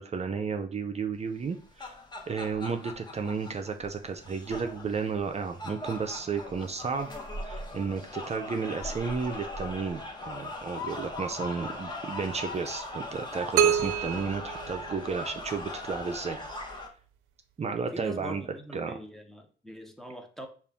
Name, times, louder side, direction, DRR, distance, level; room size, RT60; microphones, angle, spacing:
voice 1, 0.0-1.9 2.3-7.1 7.4-16.4 17.6-18.4 18.7-19.0, right 5 dB, 35° right, 0.5 m, -33 dB
sound 1, 1.4-16.9, left 2 dB, 20° left, 1.0 m, -40 dB
sound 2, 13.6-15.5, right 8 dB, 90° right, 0.4 m, -27 dB
voice 2, 17.9-20.5, equal, ahead, 0.8 m, -43 dB
5.4 x 2.5 x 3.5 m
cardioid pair, 90°, 20 cm